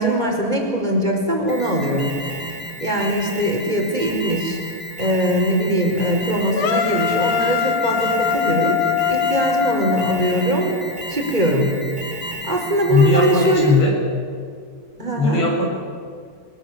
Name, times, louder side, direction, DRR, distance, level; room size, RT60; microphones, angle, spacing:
voice 1, 0.0-2.1 2.8-4.6 5.0-8.8 9.1-10.8 11.1-11.8 12.4-13.7 15.0-15.4, right 1 dB, 10° right, 1 dB, 4.5 m, -21 dB
Alarm, 1.5-13.9, equal, 20° left, 1.9 m, -33 dB
sound 1, 6.6-10.7, left 7 dB, 85° left, 1.4 m, -22 dB
voice 2, 12.9-14.0 15.0-15.6, left 3 dB, 70° left, -1 dB, 8.7 m, -18 dB
24.0 x 21.0 x 8.8 m, 2.1 s
omnidirectional pair, 5.2 m